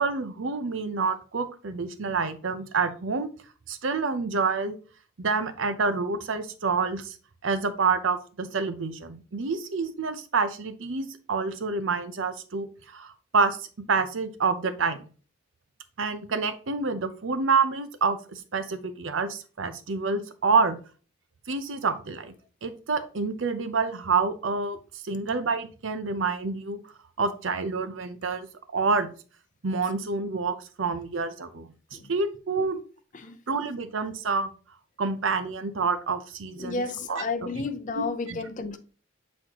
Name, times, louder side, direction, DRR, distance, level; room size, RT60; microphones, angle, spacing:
voice 1, 0.0-3.3 3.7-4.8 5.2-7.2 7.4-15.0 16.0-20.8 21.5-22.3 22.6-24.8 25.0-26.8 27.2-28.5 28.7-29.1 29.6-32.8 33.5-34.5 35.0-36.8 37.1-37.2 37.9-38.4, right 4 dB, 70° right, 0.7 m, -28 dB
voice 2, 36.6-38.8, left 4 dB, 40° left, 0.6 m, -32 dB
7.6 x 4.2 x 2.9 m
head